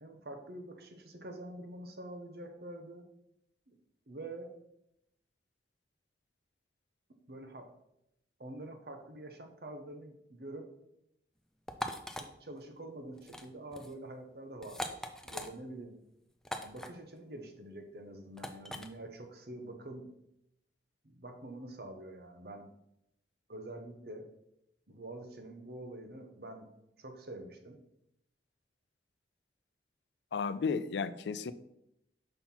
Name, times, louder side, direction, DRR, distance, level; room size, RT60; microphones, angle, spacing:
voice 1, 0.0-3.0 3.7-3.8 4.1-4.5 7.3-7.7 8.4-10.7 12.4-16.0 16.6-20.1 21.0-22.7 23.5-24.3 24.9-26.7 27.0-27.8, right 1 dB, 60° right, 5 dB, 1.0 m, -46 dB
sound 1, 11.7-12.3 13.2-13.5 13.7-13.9 14.6-15.5 16.4-16.9 18.4-18.9, equal, 5° left, 0.4 m, -40 dB
voice 2, 30.3-31.5, left 5 dB, 75° left, 14 dB, 0.4 m, -33 dB
5.7 x 4.4 x 5.6 m, 0.81 s
head